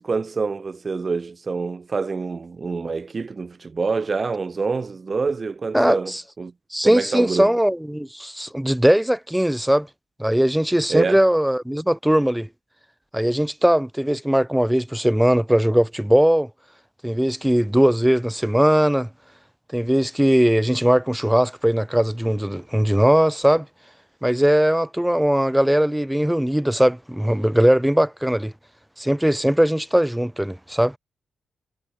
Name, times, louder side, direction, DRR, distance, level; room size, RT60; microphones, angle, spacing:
voice 1, 0.0-6.5 6.8-7.5 10.9-11.2, right 4 dB, 45° right, 2.6 m, -26 dB
voice 2, 5.7-6.2 6.7-9.9 10.2-12.5 13.1-16.5 17.0-19.1 19.7-23.7 24.2-28.5 29.0-30.9, equal, 5° right, 1.8 m, -19 dB
cardioid pair, 60°, 0 cm